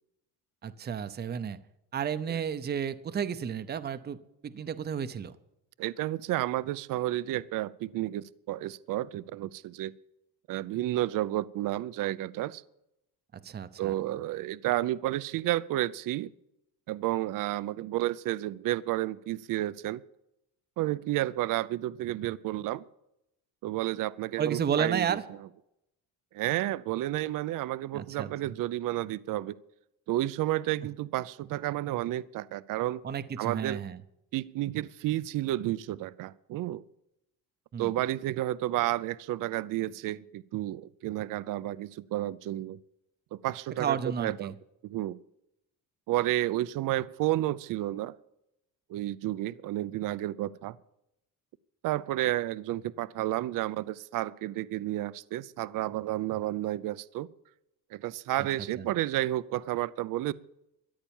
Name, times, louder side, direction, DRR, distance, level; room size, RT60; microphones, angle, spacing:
voice 1, 0.6-1.6 1.9-4.2 4.4-5.3 13.3-13.9 24.4-25.2 27.9-28.3 33.0-34.0 37.7-37.9 43.8-44.5 58.8-58.9, right 8 dB, 25° right, 0.7 m, -32 dB
voice 2, 5.8-9.9 10.5-12.6 13.8-16.3 16.9-20.0 20.8-22.8 23.6-25.2 26.3-29.6 30.1-33.0 33.4-33.8 34.3-36.8 37.8-42.8 43.3-44.5 44.8-45.2 46.1-48.2 48.9-50.7 51.8-57.3 57.9-60.3, right 15 dB, 60° right, 0.6 m, -31 dB
13.5 x 10.5 x 7.2 m
cardioid pair, 130°, 37 cm